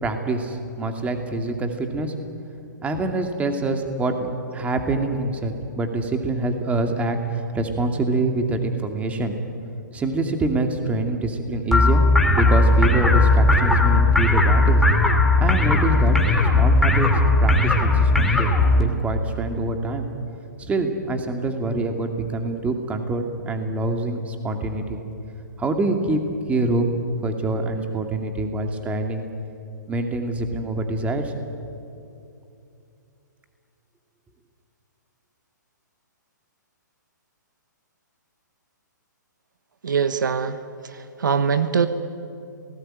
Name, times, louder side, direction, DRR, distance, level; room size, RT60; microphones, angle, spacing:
voice 1, 0.0-2.1 2.8-9.4 9.9-12.0 12.3-14.8 15.4-16.2 16.4-17.1 17.4-20.1 20.6-25.0 25.6-26.2 26.5-29.2 29.9-31.3, right 2 dB, 15° right, 5 dB, 2.5 m, -25 dB
sound 1, 11.7-18.8, left 2 dB, ahead, 2.8 m, -17 dB
voice 2, 39.8-40.6 40.8-41.9, right 6 dB, 75° right, 10 dB, 1.5 m, -22 dB
27.5 x 19.0 x 9.0 m, 2.6 s
hypercardioid pair, 130°, 10 cm